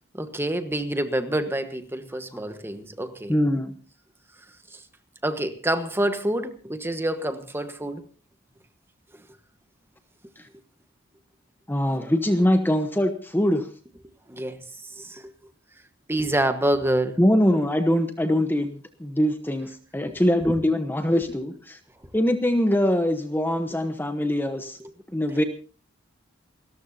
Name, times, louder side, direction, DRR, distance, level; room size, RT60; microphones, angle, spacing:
voice 1, 0.1-3.3 5.2-8.0 14.3-14.6 15.0-15.2 16.1-17.2 20.1-20.2, right 1 dB, 10° right, 1.3 m, -27 dB
voice 2, 3.3-3.8 10.4-10.5 11.7-13.7 17.2-21.8 22.1-24.8 25.1-25.4, equal, 10° left, 1.0 m, -23 dB
28.5 x 13.5 x 2.8 m
head